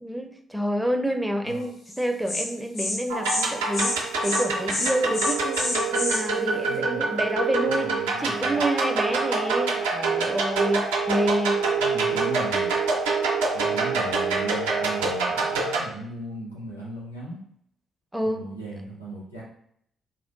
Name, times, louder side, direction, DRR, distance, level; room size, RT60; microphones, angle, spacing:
voice 1, 0.0-11.6 18.1-18.4, equal, 5° right, 5 dB, 0.4 m, -28 dB
Insect, 1.9-2.0 2.3-2.4 2.8-3.0 3.2-3.5 3.7-4.0 4.2-4.4 4.7-6.2, left 2 dB, 60° left, 1.1 m, -28 dB
sound 1, 3.1-15.8, right 4 dB, 75° right, 0.4 m, -25 dB
voice 2, 6.6-7.1 7.6-8.6 11.8-12.7 13.5-17.4 18.2-19.4, right 2 dB, 85° left, -6 dB, 0.6 m, -37 dB
3.6 x 2.3 x 2.2 m, 0.69 s
figure-of-eight pair, 40°, 0 cm